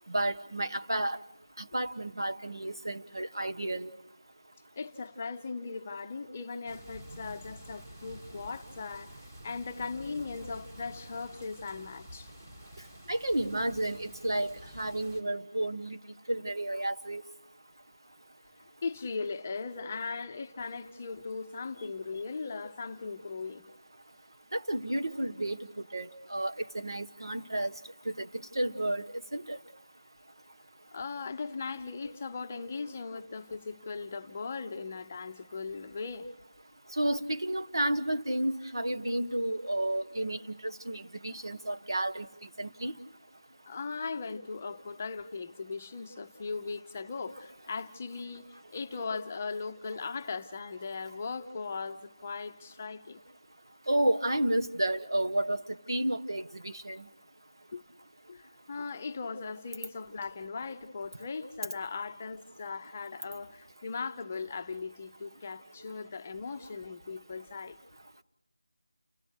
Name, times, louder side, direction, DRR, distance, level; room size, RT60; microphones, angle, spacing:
voice 1, 0.1-1.2 1.6-3.9 13.1-16.0 16.3-17.2 24.5-25.6 25.9-27.7 28.0-28.3 28.5-29.1 29.3-29.6 36.9-42.3 42.6-42.9 53.9-55.6 55.9-57.1, right 1 dB, 85° right, 1.2 m, -31 dB
voice 2, 4.8-9.2 9.4-12.3 18.8-23.6 30.9-36.3 43.7-53.2 57.7-57.8 58.3-67.8, left 4 dB, 20° left, 0.7 m, -38 dB
sound 1, 6.7-15.2, right 1 dB, 20° right, 1.3 m, -50 dB
30.0 x 14.5 x 6.5 m
figure-of-eight pair, 175°, 2 cm